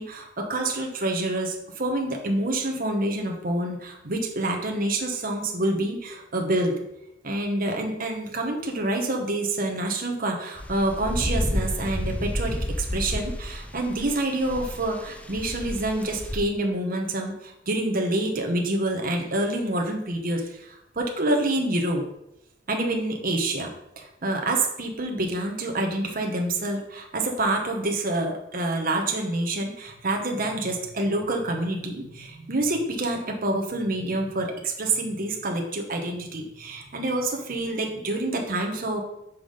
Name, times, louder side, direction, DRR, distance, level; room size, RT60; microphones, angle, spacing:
voice 1, 0.0-6.7 7.2-22.0 22.7-23.7 24.0-39.0, right 2 dB, 50° right, 2 dB, 1.2 m, -27 dB
sound 1, 10.6-16.4, left 1 dB, 5° left, 0.5 m, -31 dB
6.1 x 5.6 x 5.1 m, 0.83 s
head